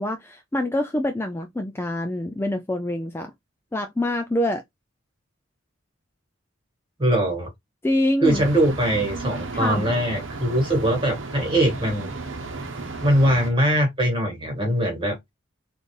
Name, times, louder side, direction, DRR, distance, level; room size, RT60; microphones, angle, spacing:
voice 1, 0.0-3.3 3.7-4.6 7.8-8.4 9.5-9.9, left 1 dB, 10° left, 0.3 m, -25 dB
voice 2, 7.0-7.5 8.2-12.1 13.0-15.2, right 1 dB, 25° right, 1.7 m, -21 dB
sound 1, 8.2-13.5, right 3 dB, 70° right, 0.8 m, -34 dB
4.2 x 2.6 x 3.1 m
head